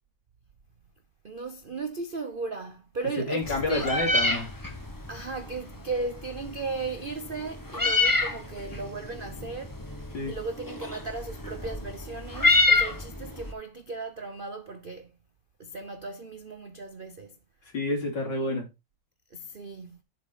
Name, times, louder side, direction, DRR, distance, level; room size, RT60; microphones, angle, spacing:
voice 1, 1.2-3.9 5.1-9.9 10.2-15.1 15.6-17.4 19.3-20.0, right 3 dB, 60° right, 0.5 m, -36 dB
voice 2, 3.2-4.5 10.1-10.3 17.7-18.7, left 2 dB, 60° left, 3.6 m, -29 dB
Meow, 3.4-13.5, left 2 dB, 15° left, 0.8 m, -28 dB
7.5 x 7.2 x 3.9 m
omnidirectional pair, 2.2 m